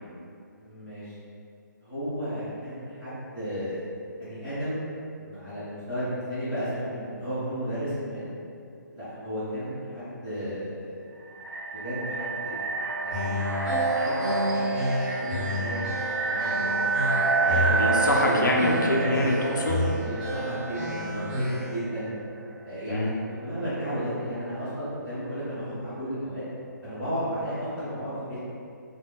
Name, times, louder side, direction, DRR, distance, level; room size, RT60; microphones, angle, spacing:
voice 1, 0.5-1.1 1.8-3.9 4.2-4.8 5.1-8.3 8.9-11.0 11.7-12.6 13.0-13.4 13.7-15.8 16.0-18.5 19.1-19.2 19.8-22.1 22.6-23.1 23.4-26.5 26.8-28.4, equal, ahead, -19 dB, 0.9 m, -34 dB
sound 1, 11.1-21.9, right 3 dB, 85° right, 0.5 m, -28 dB
sound 2, 13.1-21.8, left 1 dB, 25° right, 1.1 m, -31 dB
voice 2, 17.7-19.8 22.9-23.1, left 1 dB, 65° left, -2 dB, 0.5 m, -25 dB
2.1 x 2.1 x 3.6 m, 2.5 s
hypercardioid pair, 180°, 11 cm